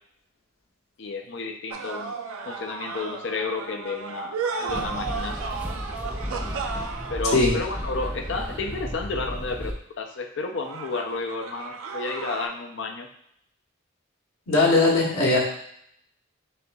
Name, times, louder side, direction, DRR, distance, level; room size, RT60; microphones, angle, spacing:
voice 1, 1.0-2.2 2.4-5.4 7.1-9.7 10.0-13.1, left 3 dB, 55° left, 5 dB, 0.4 m, -31 dB
sound 1, 1.7-9.0 10.6-12.5, right 4 dB, 80° right, 0.5 m, -34 dB
sound 2, 4.7-9.7, equal, 10° right, 0.3 m, -33 dB
voice 2, 14.5-15.4, left 3 dB, 90° left, -3 dB, 1.1 m, -19 dB
6.6 x 2.6 x 2.3 m, 0.71 s
head